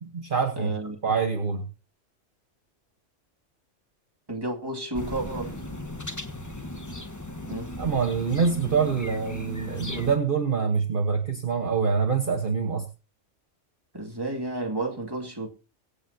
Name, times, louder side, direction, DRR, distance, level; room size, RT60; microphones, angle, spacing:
voice 1, 0.0-0.7 1.0-1.6 7.8-12.9, right 5 dB, 45° right, 1.4 m, -25 dB
voice 2, 0.6-1.1 4.3-5.6 7.5-7.7 13.9-15.5, right 2 dB, 20° right, 2.3 m, -32 dB
sound 1, 4.9-10.2, left 1 dB, 15° left, 1.1 m, -37 dB
24.5 x 8.4 x 2.8 m
omnidirectional pair, 1.3 m